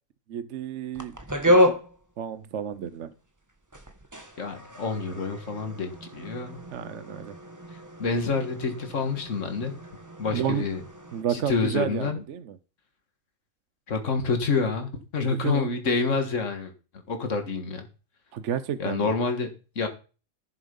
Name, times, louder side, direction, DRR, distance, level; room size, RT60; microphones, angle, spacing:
voice 1, 0.3-1.1 1.5-1.8 2.2-3.1 6.7-7.4 10.3-10.6 11.1-12.6 15.4-15.7 18.3-19.1, right 9 dB, 65° right, 13 dB, 1.0 m, -31 dB
sound 1, 0.9-3.1 3.5-11.2, left 1 dB, 15° right, 1.3 m, -29 dB
voice 2, 4.4-6.6 8.0-9.8 10.2-10.8 11.3-12.2 13.9-16.7 17.1-17.9 18.8-19.9, left 4 dB, 60° left, 6 dB, 2.2 m, -28 dB
14.0 x 7.4 x 5.4 m, 0.35 s
omnidirectional pair, 1.5 m